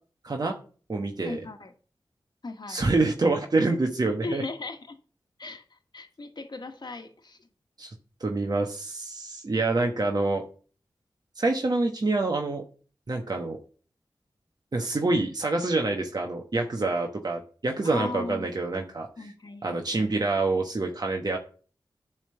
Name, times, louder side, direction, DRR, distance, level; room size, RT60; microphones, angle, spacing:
voice 1, 0.2-0.6 0.9-1.4 2.7-4.4 7.8-7.9 8.2-10.4 11.4-12.6 13.1-13.6 14.7-19.1 19.6-21.4, right 3 dB, 50° right, 2 dB, 1.2 m, -26 dB
voice 2, 1.2-1.7 2.4-2.8 4.2-5.0 5.4-7.4 17.8-18.5 19.2-20.1, left 3 dB, 60° left, 5 dB, 1.4 m, -37 dB
9.8 x 3.6 x 6.8 m, 0.40 s
cardioid pair, 40°, 9 cm